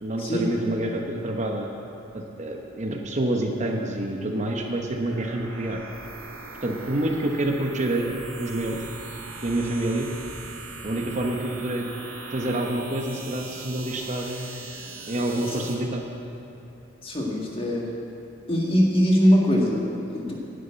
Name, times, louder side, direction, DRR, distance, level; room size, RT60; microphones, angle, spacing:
voice 1, 0.0-1.7 2.1-5.8 6.6-8.8 9.4-10.1 10.8-11.9 12.3-14.5 15.1-16.0, right 1 dB, 35° right, 1 dB, 0.9 m, -27 dB
sound 1, 4.8-15.8, right 3 dB, 85° right, 2.2 m, -40 dB
voice 2, 17.0-17.8 18.5-20.3, equal, 25° left, -2 dB, 1.7 m, -22 dB
11.0 x 7.2 x 9.0 m, 2.9 s
head